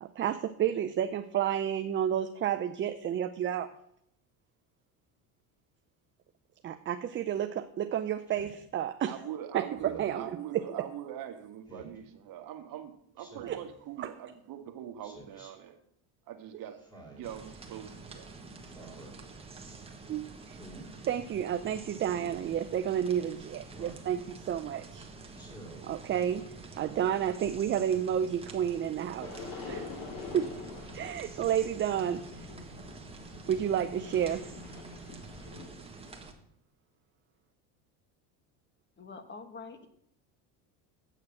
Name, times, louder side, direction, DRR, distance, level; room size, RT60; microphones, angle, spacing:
voice 1, 0.0-3.7 6.6-9.1 9.5-10.6 13.5-13.6 14.0-14.1 20.1-20.6 21.0-25.1 25.8-26.4 26.8-29.9 30.3-30.5 30.9-32.5 33.5-34.4, right 9 dB, 30° right, 7 dB, 0.5 m, -31 dB
Speech synthesizer, 8.3-8.6 9.7-10.2 11.7-12.0 13.2-13.7 15.0-15.5 16.8-17.3 18.6-19.1 20.5-20.9 22.1-22.4 23.7-24.1 25.3-25.9, right 1 dB, 10° left, 2.8 m, -50 dB
voice 2, 9.1-15.8 16.3-16.8 17.1-18.3, right 10 dB, 55° right, 6 dB, 1.4 m, -42 dB
sound 1, 17.2-36.3, right 3 dB, 15° right, 1.4 m, -48 dB
sound 2, 29.2-35.7, left 4 dB, 60° left, 3.4 m, -45 dB
voice 3, 39.0-39.9, left 4 dB, 25° left, 8 dB, 1.2 m, -45 dB
8.6 x 6.6 x 6.4 m, 0.72 s
supercardioid pair, 105°, 40 cm